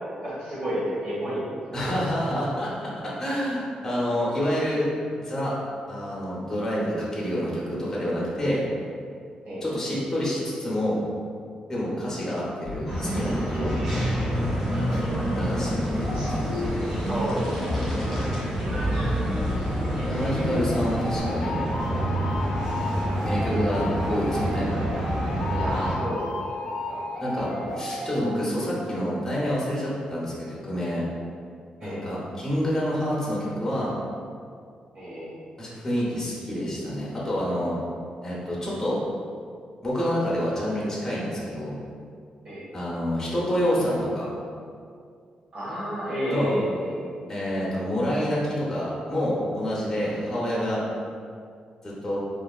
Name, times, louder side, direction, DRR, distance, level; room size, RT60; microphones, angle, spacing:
voice 1, 0.2-1.4 1.8-1.9 9.4-9.6 16.1-16.3 17.1-18.3 25.5-27.2 31.8-32.0 34.9-35.3 42.4-42.6 45.5-47.1, equal, 50° right, -9 dB, 1.2 m, -31 dB
voice 2, 1.7-4.9 5.2-5.5 5.9-8.6 9.6-11.0 11.7-13.7 15.3-16.5 20.1-21.6 23.2-24.7 27.2-31.0 31.8-33.9 35.6-37.8 38.2-39.0 39.8-41.7 42.7-44.3 46.3-46.5 47.3-50.8 51.8-52.2, equal, 15° left, -6 dB, 0.6 m, -28 dB
sound 1, 12.6-28.7, left 1 dB, 60° left, 0.4 m, -33 dB
sound 2, 12.9-26.0, equal, 25° right, 1.1 m, -28 dB
sound 3, 14.3-21.2, equal, ahead, 1.2 m, -44 dB
3.2 x 2.4 x 2.3 m, 2.3 s
wide cardioid pair, 155°, 2 cm